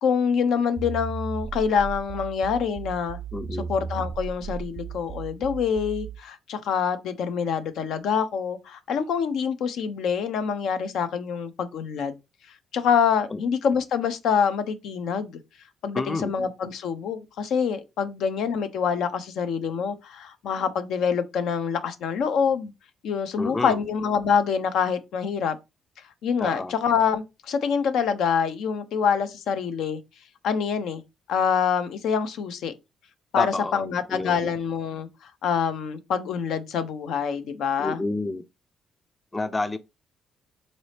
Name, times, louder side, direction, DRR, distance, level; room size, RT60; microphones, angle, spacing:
voice 1, 0.0-3.2 3.7-12.2 12.7-15.3 15.8-22.7 23.0-25.6 26.2-30.0 30.4-31.0 31.3-32.7 33.3-38.0, left 6 dB, 80° left, 0.5 m, -26 dB
sound 1, 0.8-6.2, right 6 dB, 55° right, 0.3 m, -35 dB
voice 2, 3.3-3.7 13.3-13.4 15.9-16.3 23.4-23.8 26.4-26.7 33.4-34.5 37.8-38.4 39.3-39.8, left 2 dB, 20° left, 0.4 m, -29 dB
4.0 x 2.7 x 3.2 m
cardioid pair, 90°, 0 cm